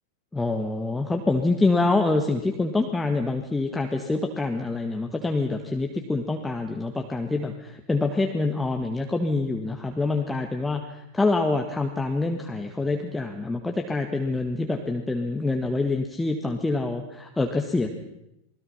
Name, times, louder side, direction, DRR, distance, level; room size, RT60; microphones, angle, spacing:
voice 1, 0.3-17.9, left 3 dB, 10° left, 3 dB, 1.8 m, -26 dB
28.5 x 20.5 x 5.8 m, 0.84 s
figure-of-eight pair, 90°, 0 cm